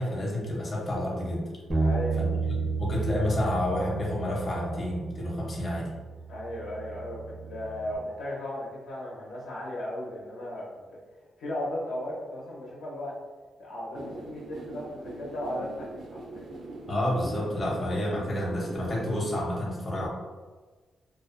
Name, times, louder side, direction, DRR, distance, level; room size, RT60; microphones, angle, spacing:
voice 1, 0.0-1.5 2.2-2.3 2.6-5.9 16.9-20.1, left 1 dB, 35° left, -4 dB, 0.6 m, -29 dB
Bass guitar, 1.7-8.0, right 4 dB, 25° right, 0.4 m, -32 dB
voice 2, 1.8-2.2 6.3-10.8 11.4-13.2 13.6-16.4, left 1 dB, 90° left, -5 dB, 0.7 m, -36 dB
sound 1, 13.9-19.4, right 2 dB, 80° right, 0.5 m, -42 dB
2.4 x 2.1 x 2.4 m, 1.3 s
cardioid pair, 100°, 0 cm